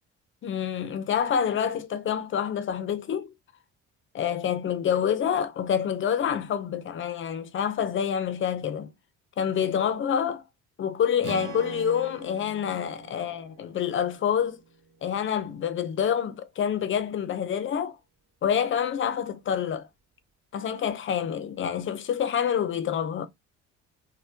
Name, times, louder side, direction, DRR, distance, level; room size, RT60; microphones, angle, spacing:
voice 1, 0.4-3.3 4.1-8.9 9.4-10.4 10.8-14.6 15.0-18.0 18.4-19.9 20.5-23.3, left 8 dB, 45° left, 0.6 m, -27 dB
Strum, 11.2-15.5, right 6 dB, 70° right, 0.9 m, -44 dB
3.4 x 2.2 x 2.7 m
cardioid pair, 115°, 29 cm